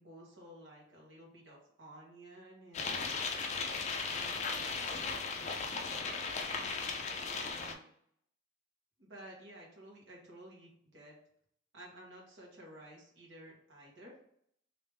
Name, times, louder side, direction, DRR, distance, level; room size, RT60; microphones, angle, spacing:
voice 1, 0.0-3.2 4.0-6.2 7.1-7.9 9.0-11.2 11.7-14.2, right 1 dB, 75° right, -2 dB, 1.3 m, -54 dB
sound 1, 2.7-7.7, left 4 dB, 35° left, 0.4 m, -37 dB
3.5 x 2.8 x 3.2 m, 0.68 s
head